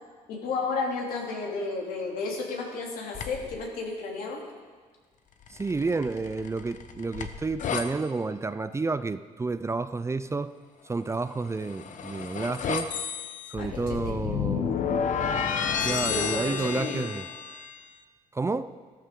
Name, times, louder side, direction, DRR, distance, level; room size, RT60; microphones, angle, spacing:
voice 1, 0.3-4.4 13.6-14.3 15.8-17.1, left 4 dB, 80° left, -2 dB, 3.0 m, -33 dB
sound 1, 3.1-3.6 5.5-7.9 11.4-17.7, left 7 dB, 60° left, 1.0 m, -31 dB
voice 2, 5.5-10.5 10.8-12.9 13.5-14.8 15.8-17.3 18.3-18.7, right 3 dB, 20° right, 13 dB, 0.5 m, -30 dB
14.5 x 13.5 x 3.8 m, 1.5 s
cardioid pair, 90°, 14 cm